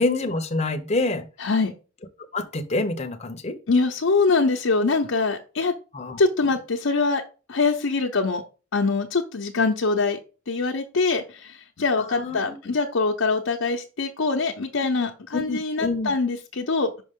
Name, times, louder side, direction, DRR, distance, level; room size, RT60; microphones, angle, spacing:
voice 1, 0.0-1.3 2.3-3.6 5.9-6.2 12.1-12.5 15.3-16.1, left 2 dB, 30° left, 0.7 m, -26 dB
voice 2, 1.4-1.7 3.7-5.7 6.2-7.2 7.5-8.4 8.7-10.2 10.5-17.0, left 3 dB, 85° left, 0.7 m, -23 dB
5.8 x 5.4 x 3.6 m
head